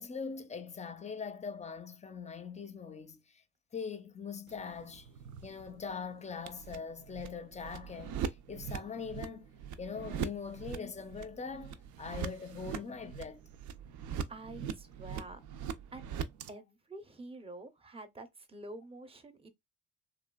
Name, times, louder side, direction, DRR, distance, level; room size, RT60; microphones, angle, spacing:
voice 1, 0.0-3.2 3.7-5.1 5.4-9.5 9.8-13.4, left 5 dB, 25° left, 0.5 m, -42 dB
sound 1, 4.5-16.5, right 8 dB, 75° right, 0.5 m, -42 dB
voice 2, 14.3-15.4 15.9-16.1 16.5-19.5, right 2 dB, 20° right, 0.6 m, -47 dB
2.9 x 2.3 x 2.2 m
cardioid pair, 90°, 30 cm